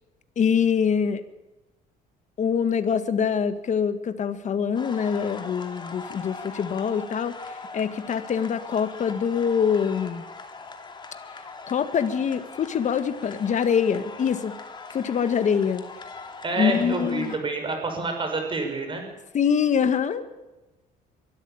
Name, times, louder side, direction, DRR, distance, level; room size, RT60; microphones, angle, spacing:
voice 1, 0.4-1.2 2.4-7.3 7.7-10.2 11.7-14.6 14.9-15.8 16.6-17.4 19.3-20.2, left 7 dB, 45° left, 10 dB, 1.7 m, -24 dB
sound 1, 4.7-17.4, left 4 dB, 25° left, 2.8 m, -41 dB
voice 2, 16.4-19.0, right 3 dB, 30° right, 4 dB, 6.2 m, -28 dB
23.0 x 13.5 x 8.7 m, 1.1 s
cardioid pair, 110°, 17 cm